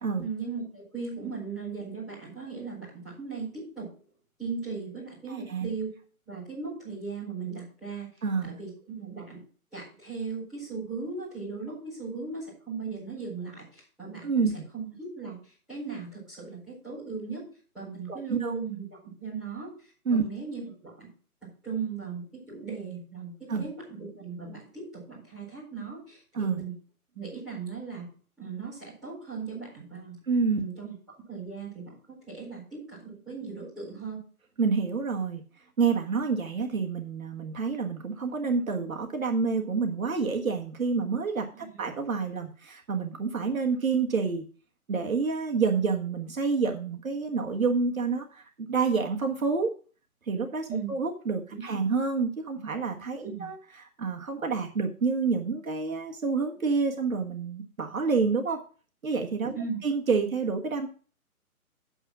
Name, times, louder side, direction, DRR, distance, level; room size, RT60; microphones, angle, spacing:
voice 1, 0.2-3.9 4.4-5.9 6.3-8.1 8.5-9.4 9.7-14.4 14.7-15.4 15.7-17.4 17.7-18.8 19.2-19.7 20.1-21.1 21.6-26.7 27.1-28.1 28.4-30.2 30.5-30.9 31.3-34.2 41.5-41.7 50.7-50.9 51.5-51.8 53.2-53.4 59.5-59.8, right 5 dB, ahead, -14 dB, 4.5 m, -37 dB
voice 2, 5.3-5.7 8.2-8.5 14.2-14.5 18.1-18.5 20.0-20.2 23.5-23.7 26.3-26.6 30.3-30.6 34.6-35.4 35.8-44.4 44.9-49.7 50.3-58.6 59.0-59.5 59.8-60.9, right 5 dB, 65° right, 3 dB, 1.6 m, -28 dB
9.0 x 6.1 x 6.0 m, 0.39 s
hypercardioid pair, 180°, 45 cm